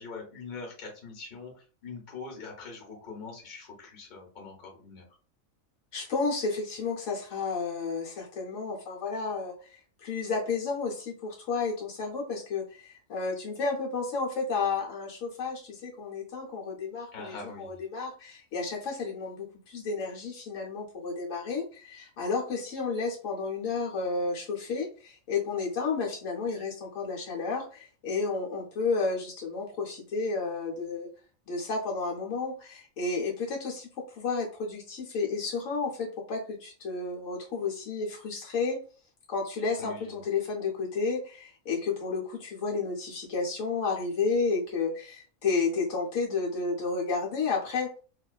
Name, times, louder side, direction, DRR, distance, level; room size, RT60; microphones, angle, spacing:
voice 1, 0.0-5.0 17.1-17.8 39.8-40.3, left 4 dB, 40° left, 0 dB, 0.9 m, -43 dB
voice 2, 5.9-31.1 31.5-38.8 39.3-47.9, left 4 dB, 70° left, -2 dB, 1.0 m, -32 dB
2.4 x 2.3 x 2.3 m, 0.38 s
omnidirectional pair, 1.4 m